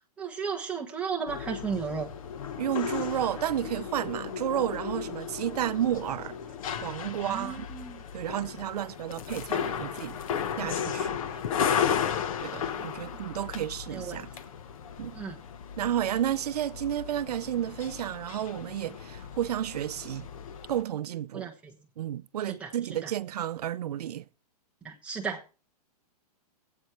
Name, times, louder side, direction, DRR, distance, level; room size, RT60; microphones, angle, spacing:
voice 1, 0.2-2.1 7.2-8.0 11.3-11.4 12.5-12.8 13.9-14.2 15.1-15.4 21.3-21.8 22.5-22.7 23.0-23.1 24.8-25.5, right 6 dB, 5° right, 1.2 m, -35 dB
sound 1, 1.3-20.8, left 8 dB, 60° left, 1.2 m, -35 dB
voice 2, 2.6-6.4 6.8-7.6 8.1-10.2 10.6-11.2 12.4-14.3 15.0-15.2 15.8-20.3 20.7-21.5 22.0-24.2, right 11 dB, 75° right, 0.6 m, -31 dB
22.0 x 8.2 x 3.1 m
hypercardioid pair, 165°, 20 cm